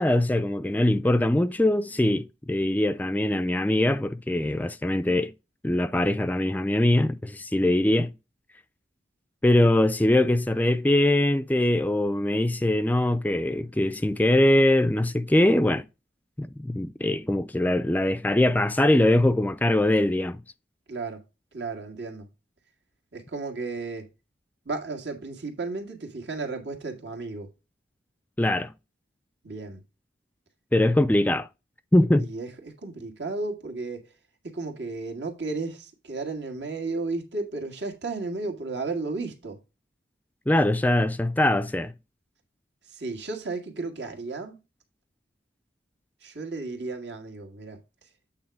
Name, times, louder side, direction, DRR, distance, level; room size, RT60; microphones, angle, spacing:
voice 1, 0.0-5.3 5.6-8.1 9.4-15.9 16.4-20.4 28.4-28.7 30.7-31.5 31.9-32.3 40.5-41.9, left 1 dB, 10° left, 0.3 m, -22 dB
voice 2, 20.9-21.2 21.5-22.3 23.1-24.1 24.7-27.5 29.4-29.8 32.2-34.0 34.4-39.6 42.9-44.6 46.2-47.8, right 3 dB, 85° right, 2.0 m, -33 dB
8.7 x 3.7 x 4.6 m
head